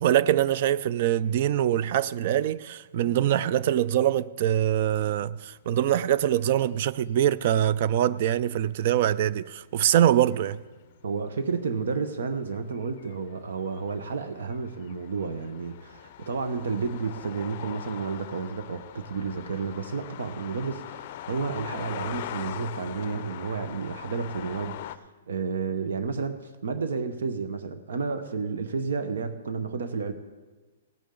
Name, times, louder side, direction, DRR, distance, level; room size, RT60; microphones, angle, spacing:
voice 1, 0.0-10.6, right 11 dB, 40° right, 0.4 m, -24 dB
sound 1, 8.4-8.8 9.9-11.0 11.7-25.0, left 12 dB, 40° left, 0.5 m, -42 dB
voice 2, 11.0-30.1, right 5 dB, 80° right, 1.0 m, -31 dB
18.0 x 8.6 x 3.8 m
hypercardioid pair, 165°, 0 cm